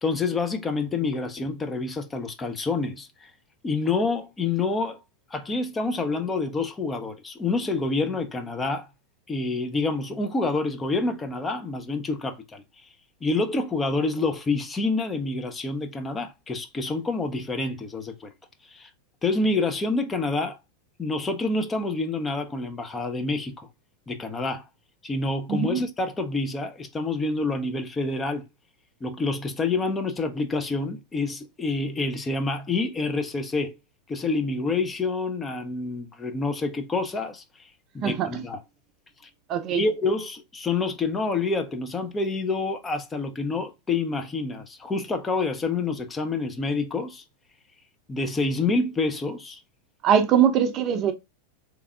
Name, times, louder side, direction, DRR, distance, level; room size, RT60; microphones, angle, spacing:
voice 1, 0.0-3.3 3.6-5.0 5.3-8.9 9.3-12.6 13.2-18.3 18.6-18.9 19.2-20.6 21.0-23.7 24.1-24.7 25.0-28.4 29.0-33.8 34.1-38.6 39.2-39.3 39.7-47.2 48.1-49.6, left 3 dB, 15° left, 0.6 m, -27 dB
voice 2, 25.5-25.8 38.0-38.4 39.5-39.8 50.0-51.1, right 8 dB, 35° right, 0.6 m, -22 dB
3.4 x 3.2 x 2.3 m
figure-of-eight pair, 90°, 0 cm